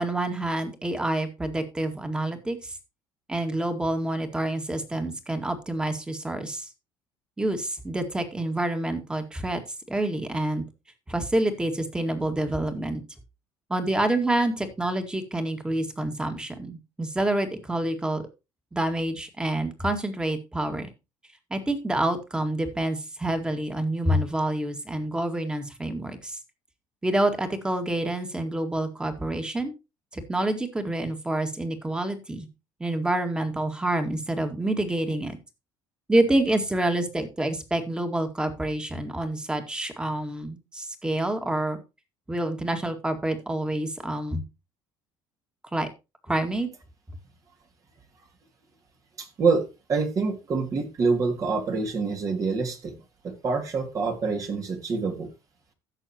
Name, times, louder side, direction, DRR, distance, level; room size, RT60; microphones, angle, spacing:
voice 1, 0.0-2.8 3.3-6.7 7.4-9.6 9.9-10.6 11.1-13.0 13.7-18.2 18.7-20.9 21.5-26.4 27.0-29.7 30.1-32.5 32.8-35.4 36.1-41.8 42.3-44.4 45.7-45.9 46.3-46.7, right 1 dB, 10° right, 6 dB, 2.0 m, -27 dB
voice 2, 49.2-53.0 53.2-55.3, right 4 dB, 40° right, 4 dB, 2.5 m, -26 dB
16.0 x 6.5 x 2.9 m, 0.27 s
cardioid pair, 115°, 8 cm